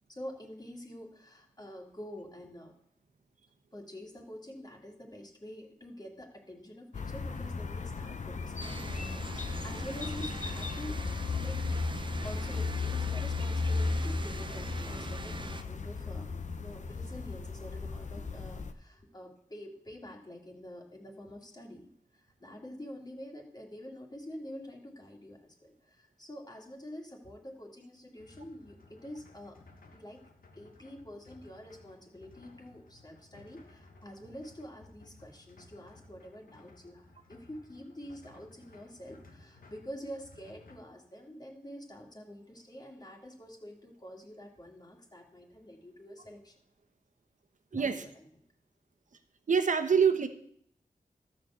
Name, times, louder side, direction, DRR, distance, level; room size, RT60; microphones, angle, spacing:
voice 1, 0.1-2.7 3.7-11.0 11.3-11.8 12.2-16.3 16.6-29.6 29.9-30.2 30.5-46.6 47.7-48.2, equal, 30° left, 0 dB, 2.4 m, -47 dB
sound 1, 6.9-18.7, left 4 dB, 60° left, 0.8 m, -35 dB
sound 2, 8.6-15.6, right 3 dB, 35° right, 0.7 m, -43 dB
sound 3, 28.2-40.8, left 2 dB, 85° left, 1.5 m, -58 dB
voice 2, 47.7-48.1 49.5-50.3, right 6 dB, 65° right, 9 dB, 1.0 m, -25 dB
13.0 x 4.5 x 7.5 m, 0.66 s
wide cardioid pair, 65°, 14 cm